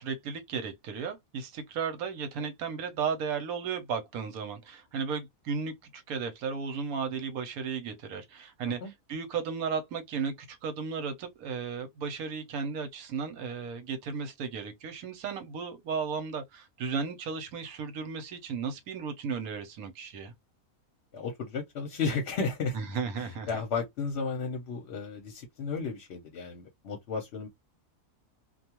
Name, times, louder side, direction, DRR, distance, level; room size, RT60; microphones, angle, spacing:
voice 1, 0.0-8.8 9.1-20.3 22.7-23.5, right 6 dB, 80° right, 1.1 m, -35 dB
voice 2, 21.1-22.8 23.2-27.5, left 4 dB, 60° left, 0.8 m, -33 dB
2.4 x 2.3 x 2.8 m
omnidirectional pair, 1.5 m